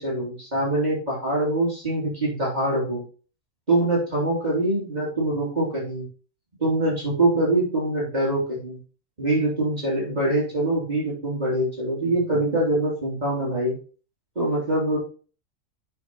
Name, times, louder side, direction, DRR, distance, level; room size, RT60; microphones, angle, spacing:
voice 1, 0.0-3.0 3.7-6.1 6.6-8.8 9.2-13.7 14.3-15.0, right 1 dB, 30° right, -5 dB, 3.3 m, -24 dB
9.2 x 5.9 x 3.0 m, 0.36 s
omnidirectional pair, 1.4 m